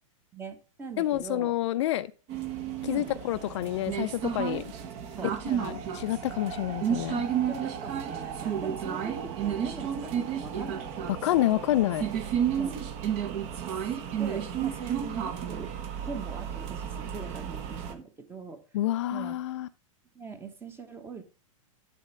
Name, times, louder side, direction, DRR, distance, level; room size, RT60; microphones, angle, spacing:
voice 1, 0.3-1.6 2.9-3.1 4.8-5.4 7.5-11.2 12.6-12.8 13.6-15.7 16.0-18.6 19.1-19.4 20.1-21.2, right 4 dB, 15° right, 1.1 m, -42 dB
voice 2, 1.0-2.1 2.8-4.6 5.5-7.2 11.2-12.1 18.7-19.7, left 14 dB, 55° left, 0.5 m, -28 dB
sound 1, 2.3-17.9, right 9 dB, 35° right, 1.0 m, -32 dB
11.0 x 4.2 x 3.3 m
hypercardioid pair, 135°, 18 cm